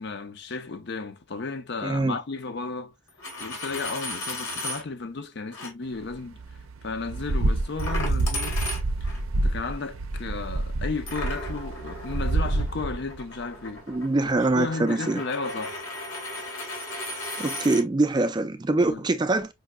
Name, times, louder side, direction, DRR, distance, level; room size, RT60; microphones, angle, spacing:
voice 1, 0.0-2.9 3.4-6.4 6.8-8.6 9.0-9.1 9.4-13.8 14.4-15.8 18.9-19.0, left 4 dB, 55° left, 0.5 m, -34 dB
voice 2, 1.8-2.2 13.9-15.2 17.4-19.5, right 2 dB, 20° right, 0.3 m, -24 dB
Coin (dropping), 3.1-4.8 5.5-5.7 7.8-9.2 11.1-17.8, left 1 dB, 80° left, 1.7 m, -36 dB
sound 1, 6.1-13.4 13.8-13.9 14.3-14.4, right 2 dB, 85° right, 0.5 m, -28 dB
5.4 x 2.8 x 2.3 m
head